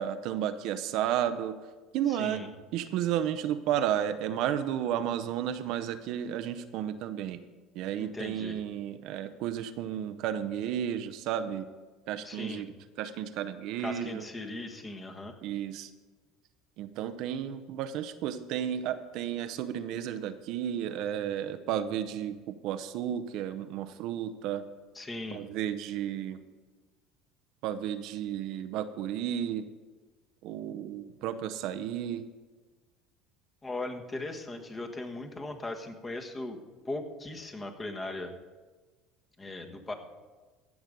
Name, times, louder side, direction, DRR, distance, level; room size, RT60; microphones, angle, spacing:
voice 1, 0.0-1.6 1.9-2.4 2.7-7.4 7.7-11.7 12.1-12.7 13.0-14.2 15.4-15.9 16.8-24.6 25.3-26.4 27.6-29.6 30.4-32.2, right 10 dB, 65° right, 10 dB, 0.7 m, -32 dB
voice 2, 2.1-2.5 8.0-8.6 12.2-12.6 13.8-15.4 24.9-25.4 33.6-36.6 36.8-38.3 39.4-39.9, left 2 dB, 20° left, 4 dB, 1.5 m, -38 dB
16.0 x 6.0 x 5.2 m, 1.3 s
supercardioid pair, 90°, 0 cm